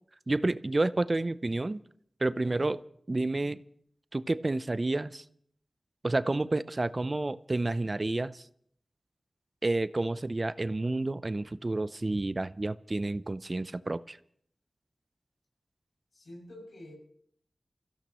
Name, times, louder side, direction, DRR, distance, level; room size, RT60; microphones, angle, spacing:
voice 1, 0.3-1.8 2.2-2.8 3.1-3.6 4.1-5.2 6.0-8.4 9.6-14.2, right 2 dB, 40° right, 0.5 m, -30 dB
voice 2, 2.4-2.7 16.1-16.9, equal, 90° left, 6.7 m, -47 dB
28.5 x 15.5 x 3.0 m
wide cardioid pair, 70°, 0 cm